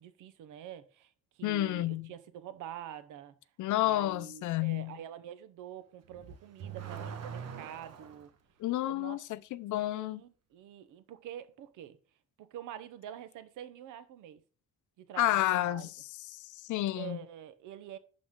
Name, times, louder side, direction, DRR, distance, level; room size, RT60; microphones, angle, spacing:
voice 1, 0.0-3.4 3.8-8.3 8.8-9.3 9.9-12.0 12.4-14.4 15.0-15.9 16.9-18.0, right 10 dB, 90° right, 0.9 m, -46 dB
voice 2, 1.4-2.1 3.6-5.0 8.6-10.2 15.2-15.9 16.5-17.2, left 15 dB, 75° left, 0.6 m, -30 dB
Car / Accelerating revving vroom, 6.0-8.3, right 7 dB, 55° right, 1.3 m, -42 dB
11.0 x 4.1 x 3.7 m
cardioid pair, 90°, 30 cm